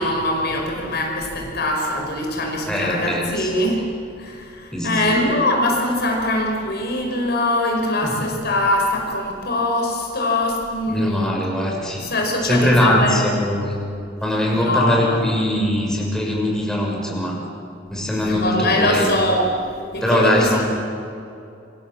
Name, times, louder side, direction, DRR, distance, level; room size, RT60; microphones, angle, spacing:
voice 1, 0.0-3.9 4.2-11.3 12.0-13.3 14.5-15.2 18.1-19.5 19.9-20.6, left 1 dB, 55° left, 1 dB, 5.4 m, -22 dB
voice 2, 2.7-3.5 4.7-5.2 8.0-8.1 10.9-12.1 12.4-13.8 14.2-17.4 17.9-19.2 20.0-20.6, left 1 dB, 5° left, -2 dB, 6.3 m, -21 dB
28.0 x 25.5 x 7.5 m, 2.6 s
head